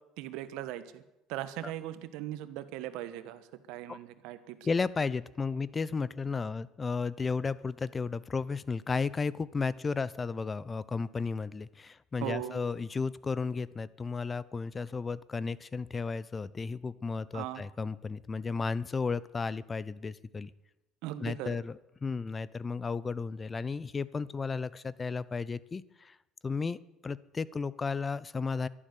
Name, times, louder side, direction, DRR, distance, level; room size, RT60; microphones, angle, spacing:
voice 1, 0.2-1.0 1.3-4.6 12.2-12.6 17.3-17.6 21.0-21.6, right 13 dB, 70° right, 12 dB, 1.5 m, -39 dB
voice 2, 4.6-20.5 21.2-26.2 26.4-28.7, left 4 dB, 30° left, 19 dB, 0.8 m, -34 dB
12.5 x 11.5 x 9.6 m, 0.92 s
hypercardioid pair, 75°, 0 cm